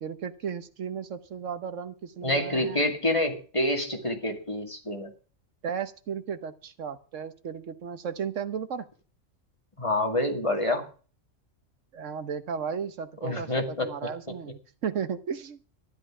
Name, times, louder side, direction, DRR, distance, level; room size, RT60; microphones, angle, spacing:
voice 1, 0.0-2.9 5.6-8.9 11.9-15.6, right 7 dB, 75° right, 12 dB, 1.4 m, -35 dB
voice 2, 2.2-5.1 9.8-10.9 13.2-13.9, left 1 dB, 25° left, 4 dB, 2.3 m, -27 dB
12.5 x 11.5 x 6.0 m, 0.38 s
omnidirectional pair, 1.3 m